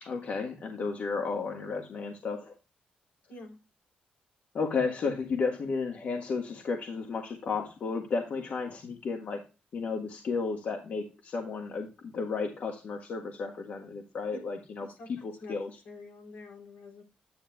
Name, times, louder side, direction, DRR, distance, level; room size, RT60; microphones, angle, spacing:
voice 1, 0.0-2.5 4.5-9.4 9.7-15.7, left 4 dB, 60° left, 3 dB, 1.6 m, -33 dB
voice 2, 14.9-15.6 15.8-17.0, left 2 dB, 85° left, 1 dB, 4.2 m, -47 dB
10.5 x 8.8 x 2.3 m, 0.30 s
cardioid pair, 115°, 3 cm